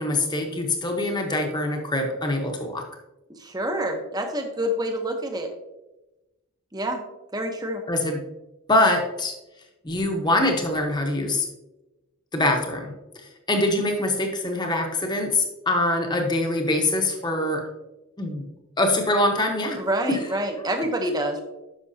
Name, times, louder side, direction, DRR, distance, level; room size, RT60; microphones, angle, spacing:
voice 1, 0.0-2.8 7.9-8.2 8.7-9.3 9.8-11.5 12.3-17.6 18.2-18.4 18.8-19.8 20.1-20.2, left 1 dB, 20° left, 3 dB, 1.0 m, -24 dB
voice 2, 3.4-5.5 6.7-7.0 7.3-7.8 19.8-21.4, right 1 dB, 20° right, 5 dB, 0.9 m, -27 dB
10.0 x 6.2 x 2.8 m, 1.0 s
head